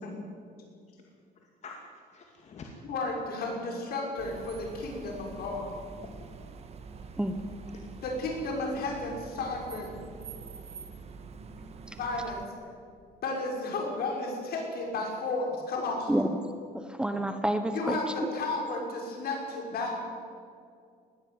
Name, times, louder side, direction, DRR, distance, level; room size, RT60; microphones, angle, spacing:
voice 1, 0.9-2.7 6.0-6.2, left 4 dB, 40° left, 1 dB, 2.3 m, -48 dB
voice 2, 2.9-5.7 8.0-10.0 12.0-12.4 13.2-16.1 17.7-20.0, left 2 dB, 65° left, 1 dB, 6.0 m, -33 dB
sound 1, 4.2-12.5, right 4 dB, 40° right, 1.7 m, -45 dB
voice 3, 16.8-18.3, right 1 dB, 5° right, 7 dB, 1.0 m, -29 dB
20.0 x 16.0 x 9.6 m, 2.3 s
cardioid pair, 155°, 17 cm